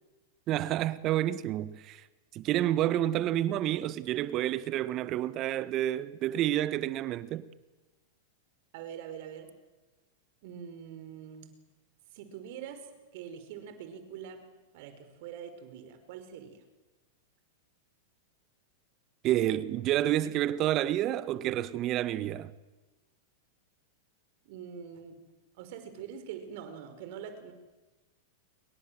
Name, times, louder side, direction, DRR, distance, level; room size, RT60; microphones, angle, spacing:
voice 1, 0.5-2.0 2.3-7.5 19.2-22.5, right 13 dB, 40° right, 1.5 m, -29 dB
voice 2, 8.7-9.5 10.4-11.5 12.1-12.9 13.1-14.4 14.7-16.6 24.4-25.2 25.6-27.5, right 8 dB, 60° right, 5.0 m, -44 dB
29.0 x 23.0 x 7.8 m
hypercardioid pair, 100°, 0 cm